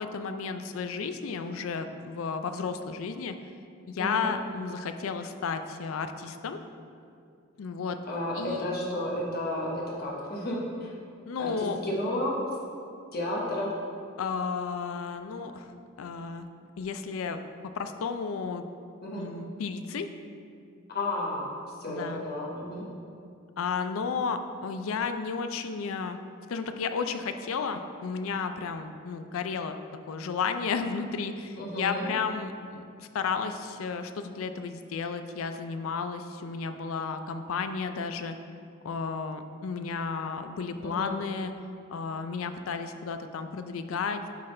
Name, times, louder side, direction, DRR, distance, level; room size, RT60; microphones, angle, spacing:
voice 1, 0.0-3.3 3.9-6.6 7.6-8.0 8.4-8.7 11.3-11.8 14.2-15.7 16.0-16.5 16.8-17.4 17.7-18.7 19.2-20.1 21.9-22.2 23.6-26.2 26.5-29.8 30.1-38.3 38.8-41.5 41.9-44.3, left 5 dB, 80° left, 8 dB, 0.4 m, -33 dB
voice 2, 8.1-10.9 11.4-12.4 13.1-13.7 19.0-19.3 20.9-21.5 21.8-22.9 31.6-32.1 40.8-41.1, left 1 dB, 50° left, -4 dB, 1.2 m, -32 dB
8.4 x 3.8 x 3.2 m, 2.4 s
head